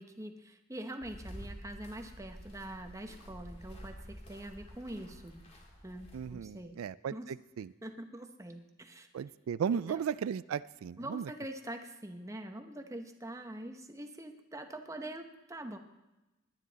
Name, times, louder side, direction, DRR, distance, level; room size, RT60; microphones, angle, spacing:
voice 1, 0.0-5.5 5.8-6.8 7.1-7.3 7.8-9.1 9.7-10.0 11.0-15.8, right 1 dB, 15° right, 6 dB, 0.9 m, -44 dB
sound 1, 1.0-6.6, equal, 30° left, 2.3 m, -49 dB
voice 2, 6.1-7.7 9.1-11.3, right 7 dB, 85° right, 17 dB, 0.3 m, -36 dB
20.5 x 9.9 x 4.1 m, 1.0 s
head